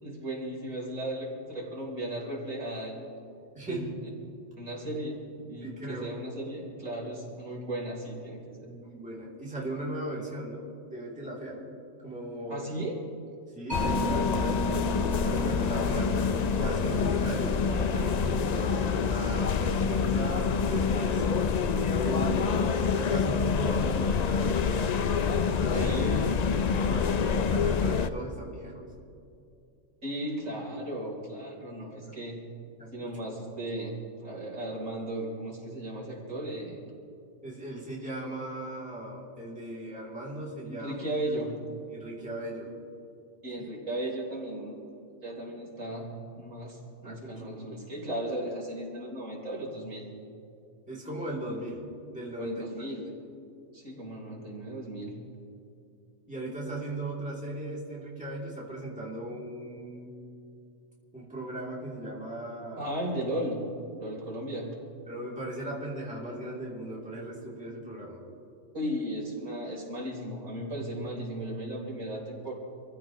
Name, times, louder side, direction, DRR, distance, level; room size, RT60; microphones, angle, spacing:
voice 1, 0.0-3.1 3.7-3.9 4.6-8.7 12.5-13.0 25.7-26.5 30.0-32.4 32.9-36.8 40.7-41.5 43.4-44.8 45.2-46.1 46.4-50.0 52.4-53.1 53.7-55.2 62.8-63.6 64.0-64.7 68.7-72.5, right 1 dB, 70° right, -3 dB, 4.1 m, -36 dB
voice 2, 3.5-3.9 5.6-6.1 8.6-11.6 12.0-12.7 13.5-14.6 15.2-16.2 16.5-17.6 17.9-21.3 22.0-24.9 25.5-26.0 26.6-28.9 32.8-33.2 37.4-41.0 41.9-42.7 43.6-43.7 47.0-47.5 50.9-52.6 56.3-60.2 61.1-63.0 65.1-68.2, right 1 dB, 5° right, -5 dB, 2.9 m, -37 dB
sound 1, 13.7-28.1, left 5 dB, 80° left, 0.3 m, -27 dB
Mallet percussion, 13.7-20.8, equal, 55° left, 5.3 m, -37 dB
26.5 x 15.5 x 3.0 m, 2.6 s
omnidirectional pair, 1.4 m